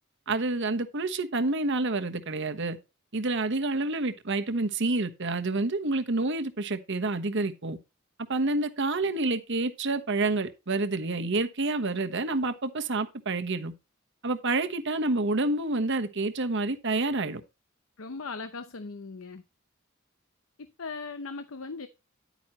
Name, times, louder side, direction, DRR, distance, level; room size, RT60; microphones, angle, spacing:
voice 1, 0.3-2.8 3.1-7.8 8.3-13.7 14.2-17.4, right 2 dB, 60° right, 1.2 m, -28 dB
voice 2, 18.0-19.4 20.6-21.9, left 4 dB, 80° left, 0.8 m, -38 dB
10.5 x 9.2 x 3.0 m
head